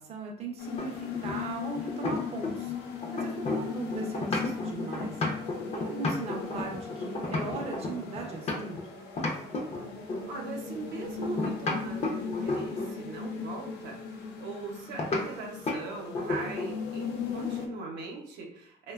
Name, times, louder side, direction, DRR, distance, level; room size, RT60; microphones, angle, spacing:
voice 1, 0.0-5.2 5.7-8.7, right 3 dB, 40° right, 0 dB, 0.5 m, -38 dB
sound 1, 0.6-17.7, left 6 dB, 85° left, 0.5 m, -38 dB
sound 2, 0.8-2.7 3.0-8.8 9.2-10.3 11.2-13.0 15.0-15.3 15.7-15.8 16.1-16.8, left 2 dB, 40° left, 0.5 m, -32 dB
voice 2, 10.3-18.9, right 3 dB, 80° right, 0 dB, 0.7 m, -40 dB
2.9 x 2.2 x 2.3 m, 0.66 s
cardioid pair, 110°, 17 cm